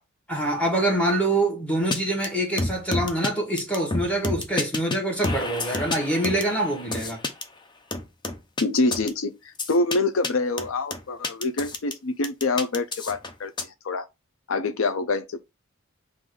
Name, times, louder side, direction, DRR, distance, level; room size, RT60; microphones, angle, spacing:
voice 1, 0.3-7.2, right 1 dB, 5° left, 1.4 m, -25 dB
sound 1, 1.9-2.0 2.2-2.3 2.6-3.3 3.6-5.0 5.2-7.4 7.9-8.6 8.9-9.1 9.6-10.0 10.2-10.3 10.6-11.9 12.2-13.6, left 2 dB, 20° left, 0.5 m, -29 dB
voice 2, 8.6-14.1 14.5-15.4, left 3 dB, 70° left, 0.5 m, -26 dB
3.8 x 2.6 x 4.7 m
head